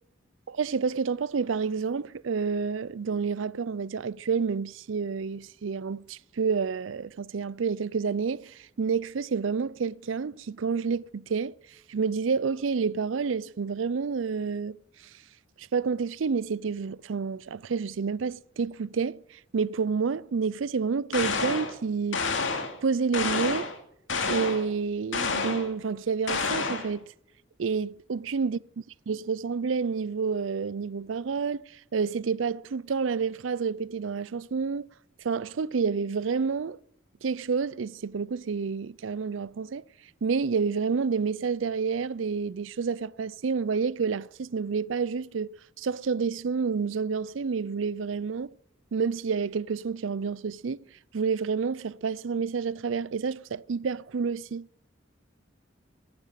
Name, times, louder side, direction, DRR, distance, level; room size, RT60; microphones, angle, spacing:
voice 1, 0.5-11.5 11.9-14.8 15.6-19.2 19.5-22.3 22.8-23.7 24.3-27.0 27.6-28.6 29.1-34.9 35.2-36.8 37.2-39.8 40.2-45.5 45.8-48.5 48.9-50.8 51.1-54.7, right 5 dB, 90° right, 0.5 m, -29 dB
sound 1, 21.1-21.7 22.1-22.8 23.1-23.8 24.1-24.6 25.1-25.7 26.3-26.9, left 4 dB, 75° left, 2.5 m, -29 dB
14.5 x 10.5 x 9.3 m
head